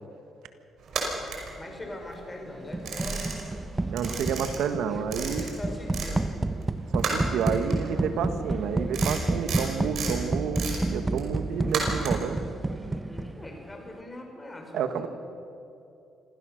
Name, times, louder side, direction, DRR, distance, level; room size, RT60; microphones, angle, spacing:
sound 1, 0.8-2.2 2.5-3.7 3.9-6.2 6.4-12.4, right 5 dB, 65° right, 5.3 m, -33 dB
voice 1, 1.6-3.3 4.1-4.2 4.9-6.3 13.1-15.1, left 1 dB, 20° left, 2 dB, 5.3 m, -41 dB
sound 2, 2.7-13.6, right 2 dB, 20° right, 0.9 m, -30 dB
voice 2, 3.9-5.5 6.9-12.4 14.7-15.1, right 7 dB, 80° right, 9 dB, 1.5 m, -30 dB
25.5 x 16.5 x 6.5 m, 2.7 s
cardioid pair, 90°, 0 cm